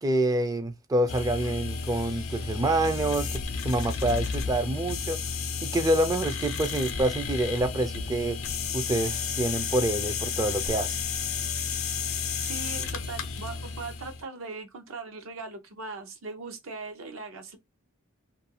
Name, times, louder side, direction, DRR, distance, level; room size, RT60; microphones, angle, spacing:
voice 1, 0.0-5.2 5.6-8.4 8.7-11.0, right 1 dB, 20° right, 0.3 m, -27 dB
sound 1, 1.1-14.2, left 5 dB, 85° left, 0.5 m, -32 dB
voice 2, 12.4-17.6, right 4 dB, 75° right, 0.6 m, -39 dB
2.5 x 2.2 x 2.7 m
head